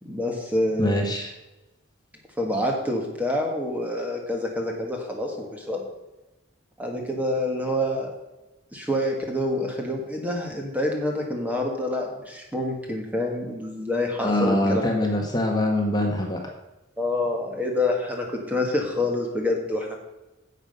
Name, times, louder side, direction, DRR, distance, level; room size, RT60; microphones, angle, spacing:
voice 1, 0.0-1.0 2.4-5.8 6.8-8.1 8.7-14.8 17.0-20.0, left 1 dB, 10° right, 1 dB, 1.5 m, -27 dB
voice 2, 0.8-1.3 14.2-16.4, left 1 dB, 20° left, 1 dB, 1.4 m, -23 dB
10.5 x 7.4 x 5.4 m, 1.0 s
head